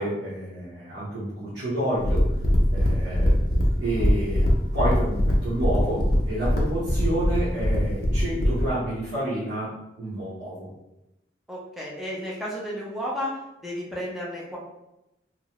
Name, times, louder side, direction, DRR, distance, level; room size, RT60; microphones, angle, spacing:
voice 1, 0.0-2.2 2.7-3.4 3.8-9.7 10.0-10.7, right 1 dB, 80° right, -11 dB, 1.0 m, -29 dB
sound 1, 2.0-8.7, equal, 50° left, 0.5 m, -22 dB
voice 2, 11.5-13.3 13.6-14.6, equal, ahead, -5 dB, 0.6 m, -32 dB
2.8 x 2.2 x 2.9 m, 0.90 s
head